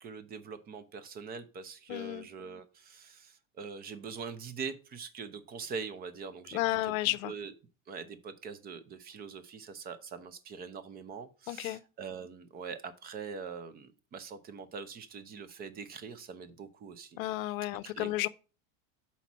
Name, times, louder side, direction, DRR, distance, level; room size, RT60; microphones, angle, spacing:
voice 1, 0.0-7.5 7.9-17.2 17.8-18.3, right 5 dB, 25° right, 0.6 m, -43 dB
voice 2, 1.9-2.3 6.5-7.3 11.5-11.8 17.2-18.3, left 16 dB, 85° left, 0.6 m, -32 dB
5.9 x 4.2 x 5.9 m
supercardioid pair, 145°, 40 cm